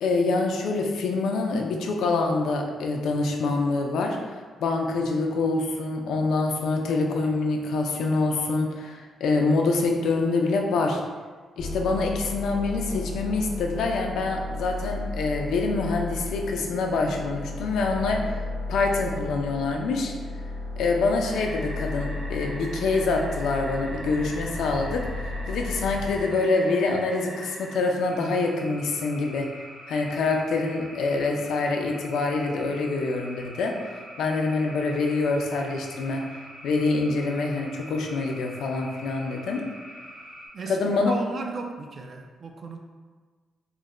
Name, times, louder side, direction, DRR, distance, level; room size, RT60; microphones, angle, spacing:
voice 1, 0.0-4.2 4.6-11.0 11.6-18.4 18.7-20.1 20.8-29.5 29.9-39.6 40.7-41.1, left 3 dB, 80° left, 1 dB, 0.4 m, -26 dB
sound 1, 11.6-26.3, left 2 dB, 10° left, 0.6 m, -34 dB
sound 2, 21.2-40.5, equal, 80° right, 1.4 m, -43 dB
voice 2, 40.5-42.8, right 4 dB, 40° right, 3 dB, 0.3 m, -36 dB
3.1 x 2.1 x 3.6 m, 1.4 s
cardioid pair, 160°, 0 cm